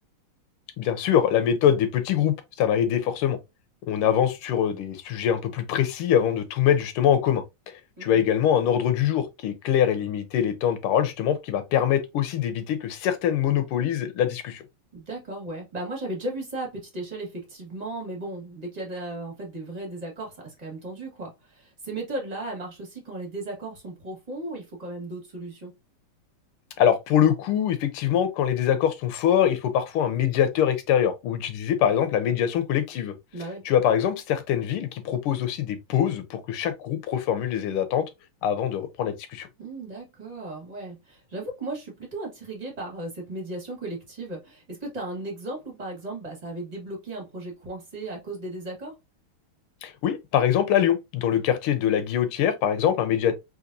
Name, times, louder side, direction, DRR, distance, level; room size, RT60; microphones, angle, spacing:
voice 1, 0.8-3.4 3.9-14.6 26.8-33.1 33.6-38.1 38.4-39.5 49.8-53.3, left 9 dB, 85° left, 1.6 m, -23 dB
voice 2, 14.9-25.7 33.3-33.7 39.6-48.9, right 2 dB, 20° right, 1.3 m, -36 dB
4.0 x 2.8 x 2.6 m
omnidirectional pair, 2.3 m